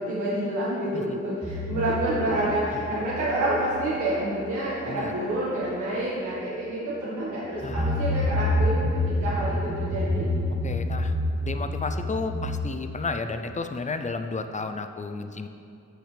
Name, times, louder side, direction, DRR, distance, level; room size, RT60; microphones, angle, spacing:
voice 1, 0.0-10.3, right 1 dB, 85° right, -8 dB, 1.7 m, -28 dB
sound 1, 1.4-4.0 4.3-4.6 4.9-5.0 7.5-12.6, left 1 dB, 10° right, 0.8 m, -28 dB
voice 2, 10.6-15.5, left 4 dB, 25° left, 8 dB, 0.5 m, -32 dB
14.5 x 6.1 x 3.4 m, 2.7 s
wide cardioid pair, 125°, 29 cm